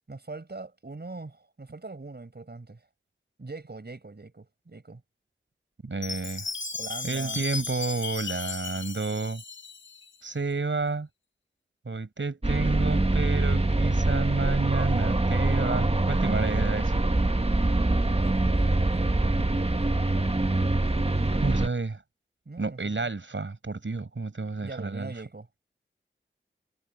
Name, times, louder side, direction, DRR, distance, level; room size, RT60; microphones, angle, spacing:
voice 1, 0.1-2.9 3.4-5.0 6.8-7.4 18.0-19.9 22.4-23.1 24.6-25.5, right 3 dB, 55° right, 5.1 m, -42 dB
voice 2, 5.8-6.5 7.0-9.4 10.2-11.1 11.9-17.0 19.3-19.6 21.3-22.0 22.6-25.1, right 3 dB, 70° right, 5.3 m, -30 dB
Chime, 6.0-10.1, left 4 dB, 70° left, 2.3 m, -36 dB
sound 1, 12.4-21.7, right 2 dB, 30° right, 1.5 m, -24 dB
wide cardioid pair, 50°, 21 cm